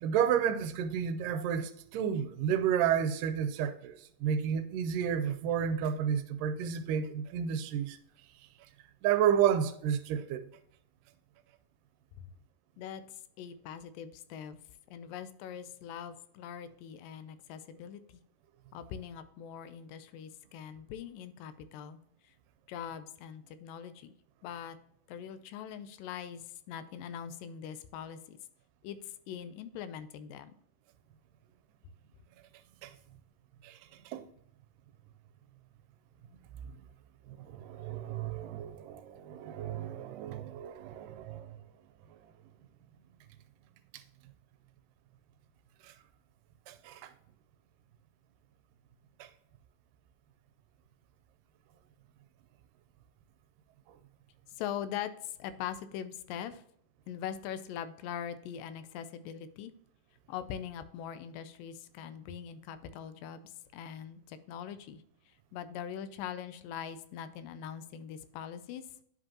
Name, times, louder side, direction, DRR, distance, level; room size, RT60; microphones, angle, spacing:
voice 1, 0.0-8.0 9.0-10.5 32.8-32.9 33.6-33.8 34.1-34.2 37.3-41.6 45.8-45.9 46.7-47.1 49.2-49.3, right 8 dB, 80° right, 2.1 m, -31 dB
voice 2, 12.8-14.6 14.9-18.2 18.7-22.3 22.7-24.1 24.4-24.8 25.1-28.4 28.8-30.5 54.5-56.6 57.1-59.7 60.3-68.9, left 9 dB, 90° left, 2.3 m, -42 dB
9.6 x 5.1 x 2.8 m
omnidirectional pair, 3.9 m